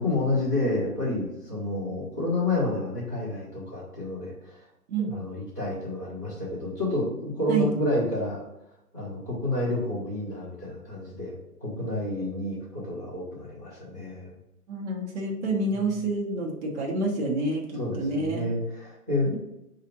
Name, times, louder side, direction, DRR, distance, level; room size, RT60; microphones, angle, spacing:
voice 1, 0.0-4.6 5.0-8.4 8.9-14.3 15.7-15.8 17.7-19.4, left 2 dB, 15° right, -11 dB, 0.4 m, -29 dB
voice 2, 14.7-18.5, right 2 dB, 50° right, -1 dB, 1.0 m, -28 dB
5.4 x 2.5 x 2.9 m, 0.87 s
hypercardioid pair, 140°, 46 cm